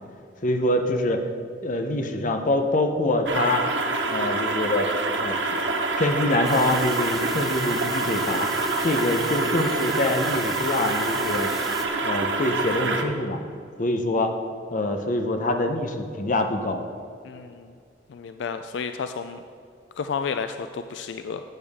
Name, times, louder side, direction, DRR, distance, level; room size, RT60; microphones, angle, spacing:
voice 1, 0.4-1.3 1.6-3.6 4.1-4.9 5.2-5.6 6.0-8.5 8.8-11.5 12.0-13.4 13.8-14.3 14.7-16.8, left 1 dB, 45° left, 6 dB, 0.8 m, -25 dB
sound 1, 3.3-13.0, right 3 dB, 75° right, 0.9 m, -26 dB
sound 2, 6.4-11.9, equal, ahead, 0.8 m, -38 dB
voice 2, 17.2-17.7 18.1-19.4 20.0-21.4, left 6 dB, 75° left, 9 dB, 0.4 m, -31 dB
12.0 x 8.6 x 3.6 m, 2.3 s
head